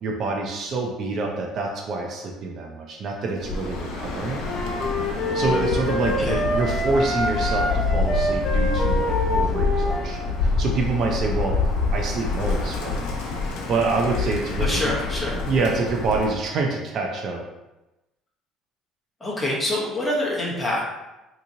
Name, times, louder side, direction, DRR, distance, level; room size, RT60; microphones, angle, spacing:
voice 1, 0.0-4.4 5.3-11.6 11.9-13.0 13.7-14.9 15.3-17.4, right 3 dB, 45° right, 1 dB, 0.4 m, -26 dB
Bird, 3.3-16.4, left 3 dB, 85° left, 0.7 m, -26 dB
sound 1, 4.4-10.2, equal, 40° left, 0.5 m, -26 dB
voice 2, 14.6-15.4 19.2-20.9, left 1 dB, 15° left, -5 dB, 0.9 m, -26 dB
3.7 x 2.9 x 2.7 m, 1.0 s
cardioid pair, 145°, 0 cm